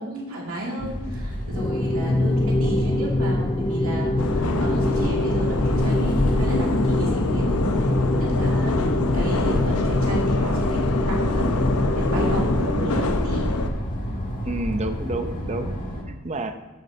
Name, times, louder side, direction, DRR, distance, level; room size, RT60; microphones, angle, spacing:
voice 1, 0.0-7.9 8.2-11.7 11.9-13.5, right 1 dB, 65° right, -3 dB, 2.6 m, -33 dB
sound 1, 0.8-16.0, equal, 35° left, 1.7 m, -30 dB
sound 2, 1.5-12.8, left 1 dB, 20° left, 0.4 m, -25 dB
voice 2, 2.1-2.5 14.4-15.8 16.1-16.6, right 2 dB, 30° right, 8 dB, 0.7 m, -30 dB
sound 3, 4.2-13.7, left 2 dB, 75° left, 0.8 m, -25 dB
12.0 x 6.4 x 4.3 m, 1.1 s
head